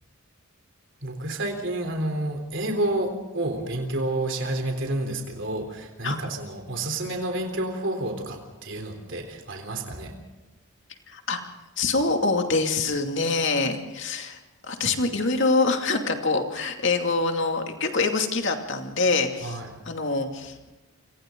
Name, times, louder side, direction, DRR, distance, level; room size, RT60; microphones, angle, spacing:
voice 1, 1.0-10.2 19.4-19.7, right 1 dB, 55° right, 4 dB, 3.7 m, -29 dB
voice 2, 11.1-11.4 11.8-19.6 19.9-20.5, left 3 dB, 55° left, 4 dB, 2.5 m, -25 dB
28.5 x 26.0 x 3.9 m, 1.1 s
head